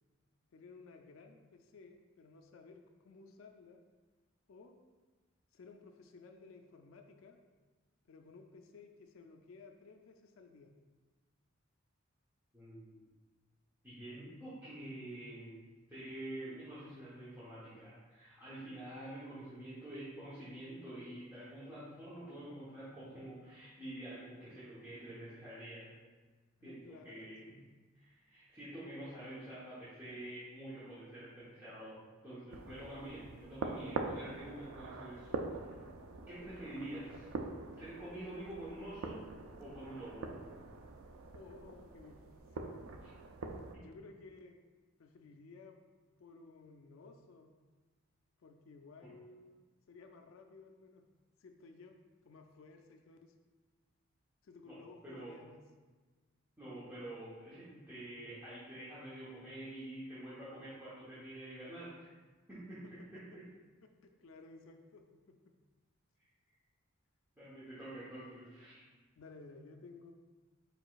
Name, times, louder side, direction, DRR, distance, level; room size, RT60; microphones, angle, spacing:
voice 1, 0.5-3.8 4.5-4.8 5.5-7.4 8.1-10.7 26.6-27.6 41.3-42.2 42.6-42.8 43.8-44.6 45.0-45.8 46.2-47.5 48.4-51.1 51.4-52.0 52.2-53.3 54.4-55.6 62.7-63.1 63.8-65.6 69.2-70.1, left 3 dB, 75° left, 5 dB, 0.4 m, -56 dB
voice 2, 12.5-13.0 13.8-15.6 15.9-25.9 26.6-27.6 27.9-35.3 35.6-35.8 36.3-37.3 37.8-39.2 39.6-40.3 43.0-43.1 43.7-43.8 49.0-49.1 54.7-55.4 56.6-62.1 62.5-63.5 67.4-68.8, right 1 dB, 10° right, -12 dB, 1.0 m, -47 dB
sound 1, 32.5-43.8, right 3 dB, 85° right, 0.4 m, -44 dB
4.8 x 4.6 x 2.4 m, 1.3 s
head